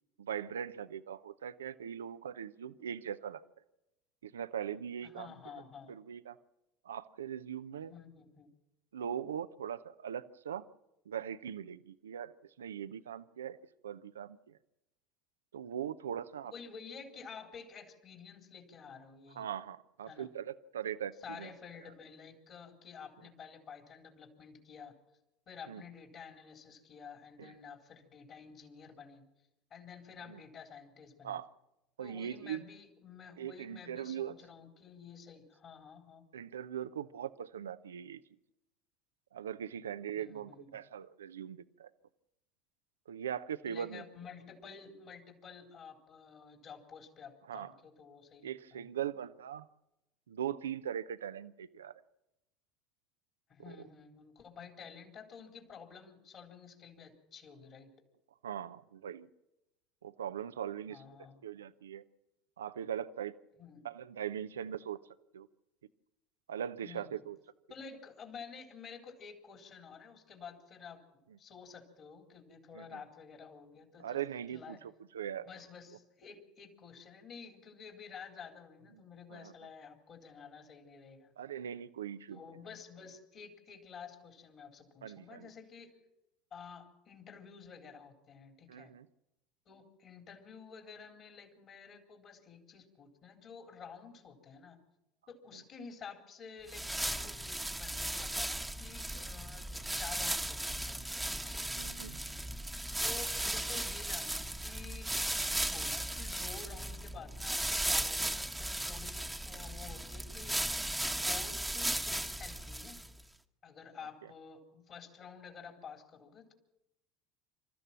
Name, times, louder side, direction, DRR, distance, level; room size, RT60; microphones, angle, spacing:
voice 1, 0.2-3.4 4.2-5.3 5.9-6.4 6.9-7.9 8.9-10.6 11.1-12.3 12.6-13.6 13.8-14.4 15.5-16.5 19.4-21.1 21.4-21.5 25.7-25.8 27.4-27.5 30.3-30.4 31.2-31.4 32.0-32.6 33.4-34.3 36.3-38.2 39.3-41.9 43.1-44.0 47.5-47.7 48.4-49.7 50.3-51.9 53.7-53.8 58.4-59.3 60.0-61.0 61.4-62.0 62.6-63.4 63.8-65.0 65.3-65.5 66.5-67.4 72.7-72.8 74.0-75.5 79.3-79.5 81.4-82.4 85.0-85.5 88.7-89.1 99.1-99.2 101.8-102.2, right 9 dB, 80° right, 14 dB, 0.6 m, -40 dB
voice 2, 5.0-5.9 7.8-8.5 16.4-19.5 20.1-20.3 21.2-25.0 25.5-29.3 29.7-31.4 32.0-36.3 40.1-40.8 43.7-48.9 53.5-57.9 60.9-61.4 63.6-63.8 66.8-67.2 67.7-74.2 74.5-74.8 75.5-81.3 82.3-86.0 86.5-88.9 89.7-94.8 95.3-101.5 103.0-110.6 111.2-113.0 113.6-116.5, left 6 dB, 45° left, 3 dB, 3.9 m, -51 dB
sound 1, 96.7-113.2, right 1 dB, 5° right, 1.3 m, -36 dB
27.0 x 13.5 x 7.5 m, 0.91 s
hypercardioid pair, 70°, 0 cm